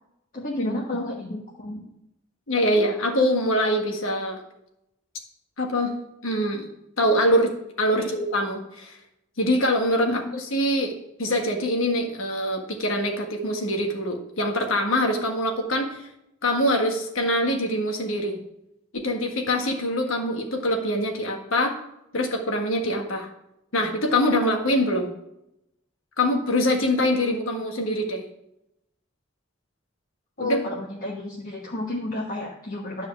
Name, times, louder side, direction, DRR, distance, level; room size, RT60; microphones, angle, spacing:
voice 1, 0.3-1.8 7.9-8.1 10.1-10.2 30.4-33.1, left 2 dB, 45° left, -3 dB, 1.3 m, -31 dB
voice 2, 2.5-4.4 5.6-5.9 6.2-6.7 7.0-9.0 9.4-10.2 10.5-10.9 11.2-16.1 16.4-18.4 18.9-21.7 22.1-23.3 23.7-25.1 26.2-28.2 30.4-30.6, left 1 dB, 85° left, 2 dB, 1.6 m, -24 dB
10.5 x 4.8 x 7.2 m, 0.83 s
head